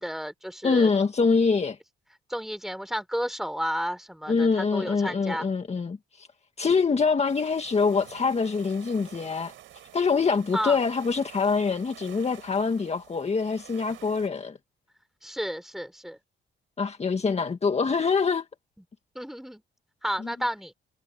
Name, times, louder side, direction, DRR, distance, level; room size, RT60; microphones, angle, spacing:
voice 1, 0.0-0.9 2.3-5.5 10.5-10.8 15.2-16.2 19.1-19.6 20.0-20.7, equal, ahead, 4.3 m, -32 dB
voice 2, 0.6-1.8 4.3-6.3 6.6-9.5 9.9-14.6 16.8-18.5 20.2-20.3, left 5 dB, 30° left, 1.9 m, -25 dB
sound 1, 7.3-14.3, right 12 dB, 80° right, 4.8 m, -49 dB
cardioid pair, 90°, 20 cm